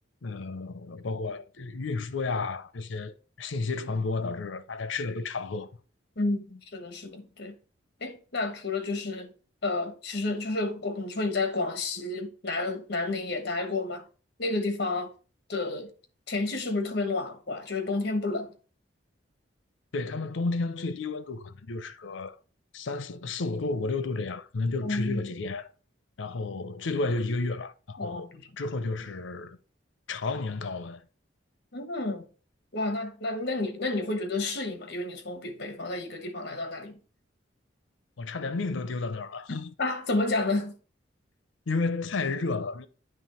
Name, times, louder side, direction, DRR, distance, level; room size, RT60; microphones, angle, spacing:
voice 1, 0.2-5.7 19.9-22.4 22.7-25.7 26.2-28.3 28.6-29.6 30.1-31.0 38.2-39.7 41.7-42.9, left 3 dB, 85° left, 0.6 m, -32 dB
voice 2, 6.2-7.5 8.0-9.3 9.6-14.0 14.4-15.1 15.5-15.9 16.3-18.5 24.8-25.3 28.0-28.5 31.7-32.3 32.7-37.0 39.8-40.7, left 2 dB, 60° left, 1.1 m, -30 dB
9.3 x 3.2 x 4.3 m
head